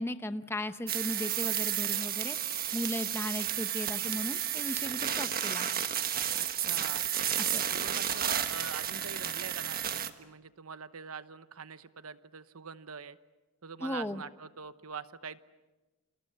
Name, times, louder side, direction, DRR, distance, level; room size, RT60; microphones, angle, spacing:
voice 1, 0.0-5.7 7.4-7.6 13.8-14.2, left 1 dB, 10° left, 10 dB, 0.9 m, -36 dB
sound 1, 0.9-10.1, right 10 dB, 45° right, 1.4 m, -32 dB
voice 2, 6.4-7.0 7.6-13.2 13.6-15.4, right 5 dB, 90° right, 12 dB, 1.0 m, -44 dB
29.0 x 28.0 x 6.8 m, 1.1 s
head